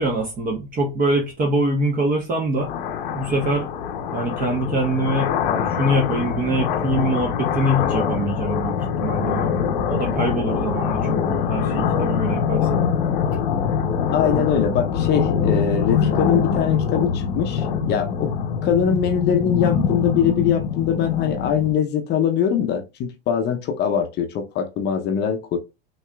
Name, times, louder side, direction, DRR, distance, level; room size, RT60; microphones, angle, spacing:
voice 1, 0.0-2.7 3.1-3.7 4.1-5.3 5.6-9.5 9.8-12.8, right 1 dB, 30° right, 1.1 m, -24 dB
sound 1, 2.6-21.8, left 7 dB, 65° left, 0.8 m, -24 dB
voice 2, 14.1-18.3 18.6-25.6, left 8 dB, 35° left, 0.7 m, -22 dB
5.5 x 2.9 x 2.3 m
hypercardioid pair, 100°, 29 cm